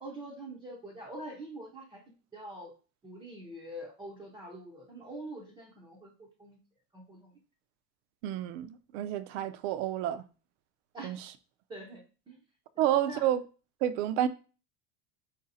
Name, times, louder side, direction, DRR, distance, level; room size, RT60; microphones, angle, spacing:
voice 1, 0.0-2.0 2.3-2.7 3.0-6.6 6.9-7.3 10.9-11.1 11.7-12.0 12.3-12.4 13.1-13.2, right 1 dB, 10° right, 0.4 m, -44 dB
voice 2, 8.2-10.2 11.0-11.2 12.8-13.4 13.8-14.3, right 11 dB, 60° right, 0.5 m, -29 dB
4.8 x 2.6 x 4.0 m
cardioid pair, 170°, 42 cm